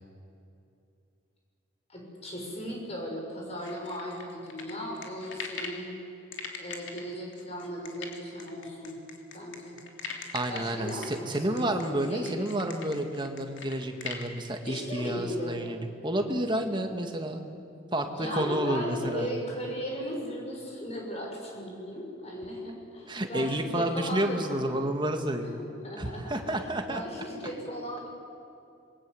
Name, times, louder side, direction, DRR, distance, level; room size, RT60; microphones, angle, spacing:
voice 1, 1.9-6.0 6.6-9.0 9.3-9.8 10.5-12.5 14.6-15.6 18.1-24.8 25.6-28.1, equal, 30° left, -1 dB, 6.7 m, -37 dB
sound 1, 3.6-5.8 6.3-14.3, left 5 dB, 65° left, 3.1 m, -41 dB
voice 2, 10.3-17.5 17.9-19.3 23.1-25.5 26.0-27.0, right 1 dB, 25° right, 5 dB, 2.0 m, -30 dB
27.5 x 22.0 x 8.0 m, 2.6 s
head